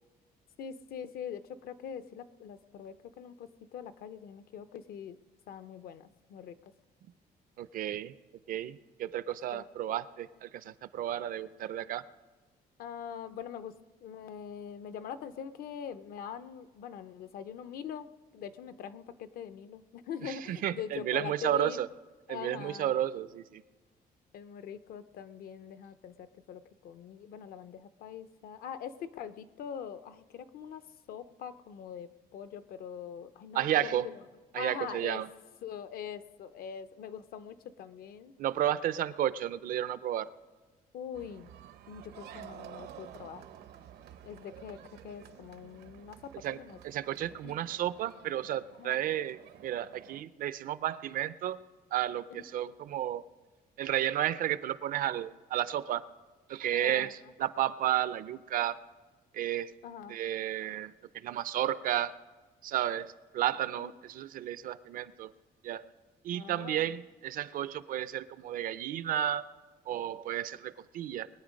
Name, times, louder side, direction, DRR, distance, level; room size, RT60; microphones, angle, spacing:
voice 1, 0.6-5.2 5.5-6.7 9.5-9.6 12.8-13.7 14.0-21.8 22.3-23.0 24.3-30.8 31.1-34.2 34.5-35.2 35.6-38.3 40.9-41.5 41.9-43.4 44.2-46.8 47.4-47.5 48.8-49.0 52.3-52.4 56.7-57.3 59.8-60.2 63.8-63.9 66.3-66.9, left 8 dB, 65° left, 13 dB, 0.7 m, -43 dB
voice 2, 7.6-8.1 8.5-12.0 20.2-21.9 22.3-23.6 33.5-34.1 34.5-35.3 38.4-40.3 46.4-46.6 46.8-51.6 51.9-53.2 53.8-56.1 56.5-58.8 59.3-59.7 60.1-62.1 62.6-65.3 65.6-65.9 66.2-69.5 69.9-71.3, right 11 dB, 60° right, 16 dB, 0.5 m, -32 dB
sound 1, 41.1-50.2, right 10 dB, 80° right, 0.9 m, -51 dB
22.5 x 8.7 x 5.2 m, 1.3 s
cardioid pair, 175°, 16 cm